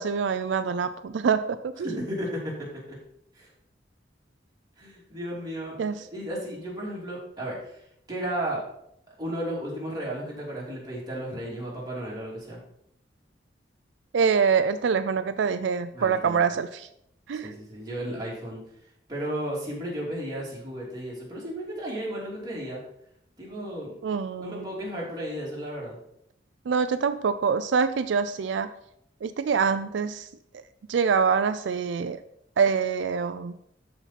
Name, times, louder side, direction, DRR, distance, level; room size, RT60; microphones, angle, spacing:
voice 1, 0.0-1.9 5.8-5.9 14.1-16.9 17.3-17.5 24.0-24.6 26.7-28.7 29.2-30.3 30.5-30.6 30.9-32.2 32.6-33.6, right 6 dB, 80° right, 11 dB, 0.4 m, -25 dB
voice 2, 1.8-3.0 3.3-3.5 4.8-5.8 6.1-7.8 8.1-8.6 9.2-12.6 15.9-16.4 17.4-18.6 19.1-22.8 23.4-23.9 24.4-26.0, right 1 dB, 20° right, -5 dB, 2.8 m, -34 dB
13.0 x 4.3 x 4.2 m, 0.75 s
head